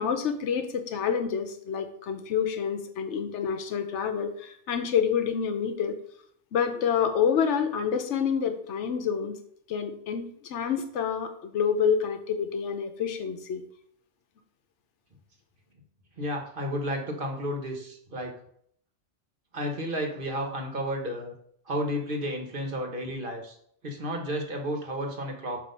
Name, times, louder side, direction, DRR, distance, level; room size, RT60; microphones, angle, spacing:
voice 1, 0.0-6.0 6.5-9.4 9.7-13.6, left 7 dB, 75° left, 8 dB, 1.0 m, -28 dB
voice 2, 16.2-18.3 19.5-21.3 21.7-23.6 23.8-25.6, equal, 50° right, 3 dB, 1.2 m, -32 dB
7.6 x 2.8 x 5.4 m, 0.66 s
omnidirectional pair, 1.2 m